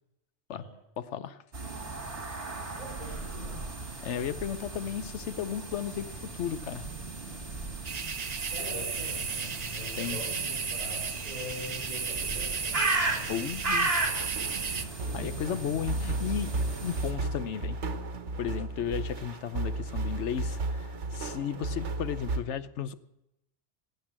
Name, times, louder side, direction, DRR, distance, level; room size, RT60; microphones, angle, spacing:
voice 1, 1.0-1.4 4.0-6.9 10.0-10.2 13.3-14.3 14.7-14.9 15.1-16.5 16.8-17.8 18.4-22.9, left 9 dB, 75° left, 13 dB, 1.1 m, -34 dB
sound 1, 1.5-17.1, right 2 dB, 55° right, 2.6 m, -36 dB
voice 2, 2.7-3.7 8.5-13.1 17.4-17.8, left 1 dB, 35° left, -6 dB, 4.7 m, -43 dB
sound 2, 7.8-14.8, right 6 dB, 40° right, 0.7 m, -34 dB
sound 3, 14.2-22.4, right 2 dB, 75° right, 1.5 m, -34 dB
16.0 x 9.1 x 7.4 m, 0.87 s
omnidirectional pair, 1.2 m